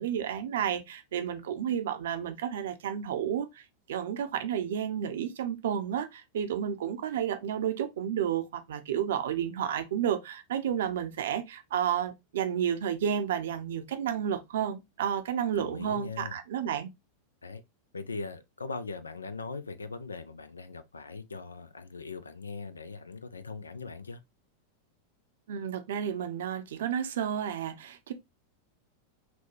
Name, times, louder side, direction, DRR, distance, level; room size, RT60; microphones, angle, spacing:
voice 1, 0.0-3.6 3.9-16.9 25.5-28.1, right 9 dB, 60° right, 0.6 m, -31 dB
voice 2, 15.5-16.4 17.4-17.6 17.9-24.2, left 4 dB, 75° left, 0.4 m, -40 dB
5.9 x 2.2 x 3.0 m
figure-of-eight pair, 90°, 0 cm